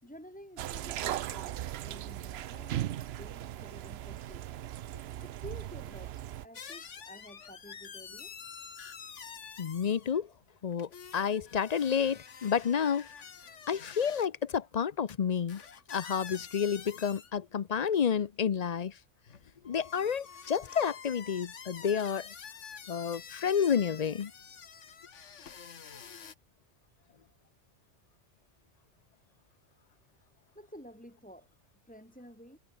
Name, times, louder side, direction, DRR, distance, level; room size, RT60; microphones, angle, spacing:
voice 1, 0.0-4.7 5.2-8.4 30.2-31.6 31.8-32.6, equal, 5° left, 7.3 m, -51 dB
sound 1, 0.6-6.4, right 12 dB, 65° right, 0.8 m, -38 dB
sound 2, 6.5-10.2 10.7-14.3 15.1-15.2 15.5-17.3 17.8-18.2 19.3-26.3, left 6 dB, 75° left, 1.7 m, -48 dB
voice 2, 9.6-10.3 10.6-13.1 13.7-15.6 15.9-19.0 19.6-22.3 22.9-24.3, left 7 dB, 45° left, 0.6 m, -30 dB
omnidirectional pair, 1.2 m